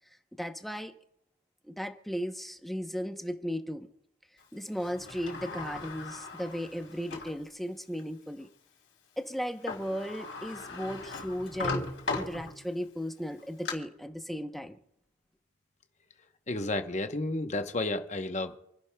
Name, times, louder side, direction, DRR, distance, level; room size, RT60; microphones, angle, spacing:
voice 1, 0.4-0.9 1.6-3.9 4.5-8.5 9.2-14.8, equal, ahead, 0.7 m, -36 dB
Sliding door, 4.8-7.4 8.0-8.1 9.4-9.5 9.7-12.8 13.3-13.7, left 3 dB, 65° left, 3.1 m, -38 dB
voice 2, 16.5-18.6, left 2 dB, 35° left, 0.9 m, -32 dB
28.0 x 11.0 x 2.2 m
head